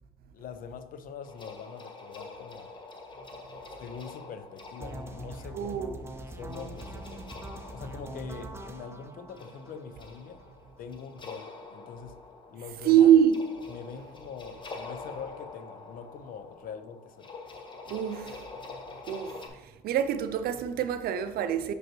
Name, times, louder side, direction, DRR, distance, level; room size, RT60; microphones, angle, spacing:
voice 1, 0.3-2.7 3.8-5.8 6.3-7.2 7.7-10.4 10.8-12.2 12.5-13.1 13.7-17.3, left 6 dB, 55° left, 0.5 m, -43 dB
sound 1, 1.2-19.5, left 3 dB, 30° left, 0.9 m, -46 dB
sound 2, 4.8-10.8, right 1 dB, 15° right, 0.6 m, -43 dB
voice 2, 5.5-5.9 12.8-13.4 17.9-18.5 19.1-21.7, right 9 dB, 65° right, 0.5 m, -24 dB
6.1 x 5.1 x 3.0 m
cardioid pair, 110°, 17 cm